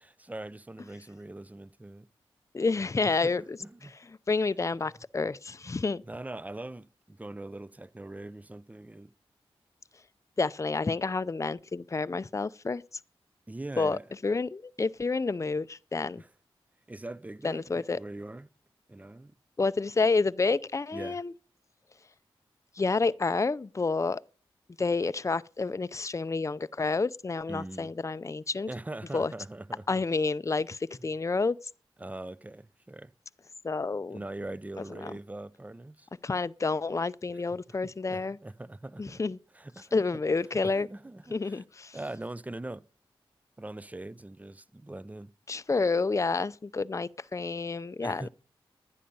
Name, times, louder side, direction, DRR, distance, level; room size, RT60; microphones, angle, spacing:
voice 1, 0.2-2.1 3.0-3.9 6.1-9.1 13.5-14.0 16.2-16.3 16.9-18.5 18.9-19.3 20.9-21.2 27.5-27.9 28.7-30.0 32.0-33.1 34.1-36.1 37.3-37.4 37.7-37.8 38.1-39.2 39.5-40.0 40.6-41.6 41.9-42.8 43.6-45.3 48.0-48.3, right 2 dB, 15° right, 0.6 m, -42 dB
voice 2, 2.5-3.6 4.3-6.0 10.4-12.8 13.8-16.2 17.4-18.0 19.6-21.3 22.8-24.2 24.8-28.7 29.1-29.3 29.9-31.6 33.6-34.2 35.0-35.1 36.2-38.4 39.0-39.4 39.9-40.9 41.3-42.0 45.5-48.3, left 4 dB, 30° left, 0.5 m, -29 dB
11.5 x 9.9 x 5.4 m
cardioid pair, 40°, 10 cm